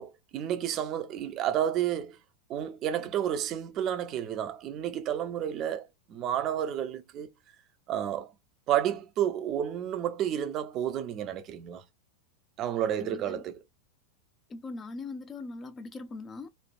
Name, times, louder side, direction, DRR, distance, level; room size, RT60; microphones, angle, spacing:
voice 1, 0.0-2.2 2.5-7.3 7.9-8.3 8.7-11.8 12.6-13.6, right 10 dB, 35° right, 0.5 m, -31 dB
voice 2, 13.0-13.4 14.5-16.5, left 3 dB, 20° left, 0.4 m, -40 dB
3.1 x 2.1 x 2.4 m
figure-of-eight pair, 90°, 0 cm